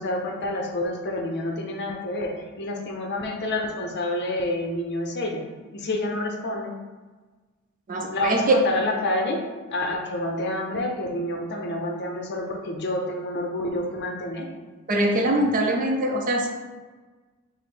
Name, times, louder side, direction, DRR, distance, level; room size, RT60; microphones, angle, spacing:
voice 1, 0.0-2.3 2.6-5.4 5.7-6.7 8.1-9.4 9.7-14.5, left 1 dB, 55° left, 1 dB, 0.7 m, -28 dB
voice 2, 7.9-8.6 14.9-16.5, right 1 dB, 40° right, 2 dB, 0.5 m, -22 dB
4.9 x 2.1 x 4.3 m, 1.3 s
head